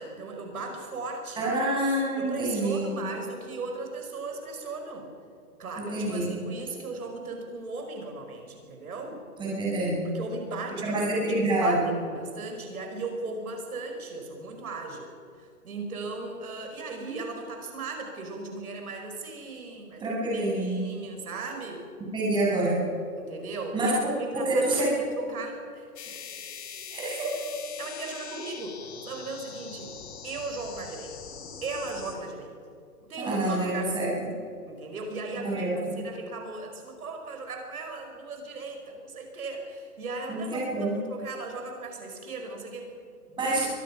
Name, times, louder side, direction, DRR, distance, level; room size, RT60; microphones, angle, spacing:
voice 1, 0.0-1.5 2.2-5.1 5.6-9.2 10.0-15.1 15.4-21.8 23.1-23.9 24.2-26.1 27.8-29.9 30.2-31.2 31.6-32.5 33.1-34.1 34.7-42.9, right 3 dB, 70° right, 3 dB, 5.1 m, -37 dB
voice 2, 1.4-3.0 5.8-6.3 9.4-10.1 10.8-11.9 20.0-20.8 22.0-22.8 23.7-25.0 26.9-27.3 33.2-34.1 35.4-36.0 40.3-41.0 43.4-43.7, right 1 dB, 10° right, -5 dB, 6.9 m, -27 dB
sound 1, 26.0-32.1, left 7 dB, 45° left, 3.5 m, -42 dB
23.5 x 19.5 x 6.0 m, 2.3 s
hypercardioid pair, 155°, 45 cm